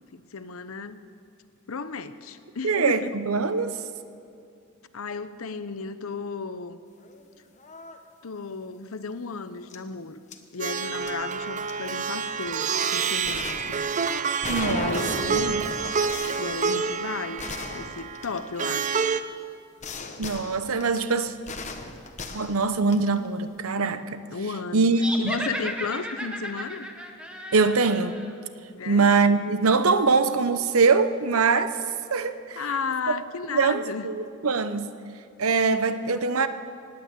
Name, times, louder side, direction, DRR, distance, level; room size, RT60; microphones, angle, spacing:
voice 1, 0.1-1.0 1.7-3.2 4.9-6.8 8.2-10.2 10.5-13.8 14.7-15.5 16.0-16.1 16.4-17.4 17.7-19.1 24.3-24.9 25.2-26.9 28.8-29.1 32.6-34.1, left 4 dB, 80° left, 12 dB, 0.8 m, -34 dB
voice 2, 2.6-3.8 14.5-15.6 20.2-21.3 22.3-24.2 24.7-25.3 27.5-28.2 28.9-31.7 32.1-32.6 33.5-34.9 35.4-36.5, right 4 dB, 90° right, 11 dB, 0.8 m, -23 dB
sound 1, 7.0-7.2 7.6-8.0 9.7-9.8 10.3-11.1 11.7-11.8 13.2-18.9 19.8-23.3, left 3 dB, 35° left, 1.0 m, -37 dB
Plucked string instrument, 10.6-19.2, right 5 dB, 35° right, 0.5 m, -28 dB
sound 2, 24.9-28.3, right 1 dB, 5° right, 1.0 m, -34 dB
19.0 x 9.0 x 8.3 m, 2.4 s
head